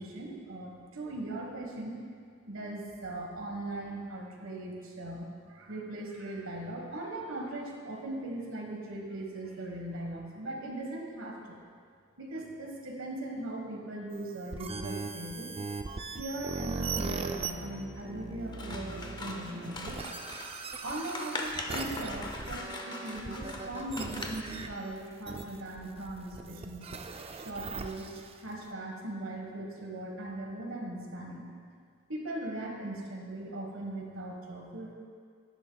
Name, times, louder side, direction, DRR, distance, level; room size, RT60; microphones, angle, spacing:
voice 1, 0.0-2.0 2.5-11.6 12.2-15.5 16.2-20.0 20.8-26.9 27.3-31.5 32.1-34.9, right 1 dB, 80° right, 0 dB, 1.4 m, -39 dB
sound 1, 14.1-28.5, right 4 dB, 30° right, 0.4 m, -40 dB
Scissors, 18.5-24.6, left 2 dB, 20° left, 0.6 m, -41 dB
11.0 x 10.0 x 2.3 m, 2.1 s
head